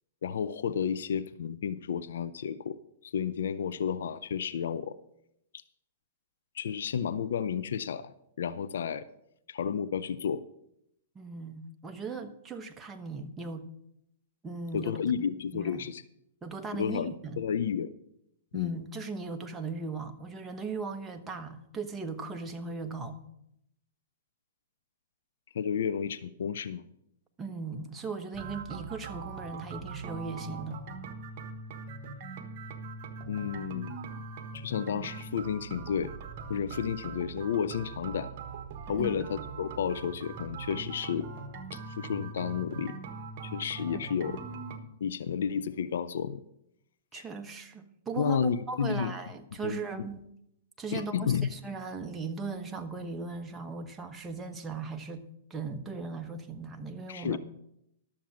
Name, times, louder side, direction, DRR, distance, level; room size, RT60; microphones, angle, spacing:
voice 1, 0.2-2.8 3.0-5.0 6.5-9.1 9.5-10.4 14.7-16.0 16.7-17.9 18.5-18.8 25.5-26.9 33.3-34.0 34.5-36.1 36.5-38.3 38.9-41.3 41.7-42.9 43.4-44.4 45.0-46.4 47.1-47.2 48.2-49.1 49.6-49.8 50.9-51.5 57.1-57.4, left 7 dB, 75° left, 14 dB, 0.5 m, -31 dB
voice 2, 11.1-13.7 14.4-15.0 15.5-15.8 16.4-17.4 18.5-23.2 27.4-30.8 38.9-39.4 43.9-44.0 47.1-50.2 50.8-57.4, right 4 dB, 15° right, 5 dB, 1.1 m, -38 dB
sound 1, 28.3-44.8, right 4 dB, 45° right, 1.3 m, -42 dB
12.0 x 7.1 x 6.2 m, 0.79 s
hypercardioid pair, 125°, 0 cm